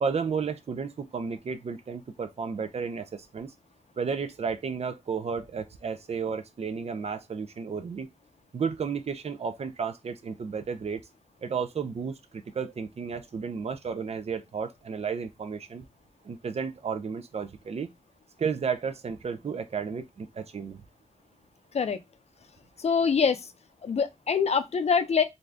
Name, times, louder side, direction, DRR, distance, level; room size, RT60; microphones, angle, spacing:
voice 1, 0.0-3.5 4.0-8.1 8.5-11.0 11.4-15.8 16.2-17.9 18.4-20.8, right 6 dB, 60° right, 0.5 m, -33 dB
voice 2, 22.8-23.4 23.8-25.2, left 6 dB, 60° left, 0.5 m, -24 dB
2.6 x 2.3 x 3.3 m
wide cardioid pair, 100°, 12 cm